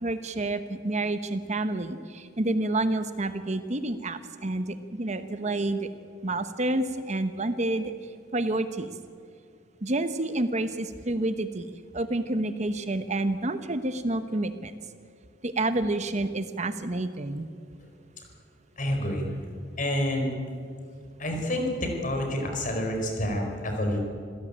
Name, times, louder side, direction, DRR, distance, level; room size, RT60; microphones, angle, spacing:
voice 1, 0.0-5.9 6.2-7.9 8.3-8.9 9.8-14.8 15.4-17.5, right 2 dB, 40° right, 10 dB, 1.0 m, -29 dB
voice 2, 18.8-19.3 19.8-20.3 21.2-24.0, left 1 dB, 45° left, 3 dB, 4.9 m, -28 dB
27.0 x 16.0 x 8.8 m, 2.2 s
head